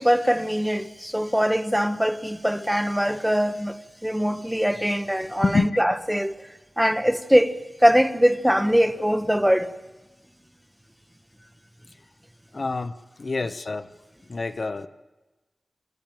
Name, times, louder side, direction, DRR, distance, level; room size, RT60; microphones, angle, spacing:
voice 1, 0.0-6.3 6.8-9.7, equal, 5° right, 0.8 m, -22 dB
voice 2, 5.4-5.8 12.5-13.9 14.3-14.9, left 3 dB, 50° left, 0.8 m, -26 dB
26.5 x 12.5 x 8.9 m
wide cardioid pair, 95°, 0 cm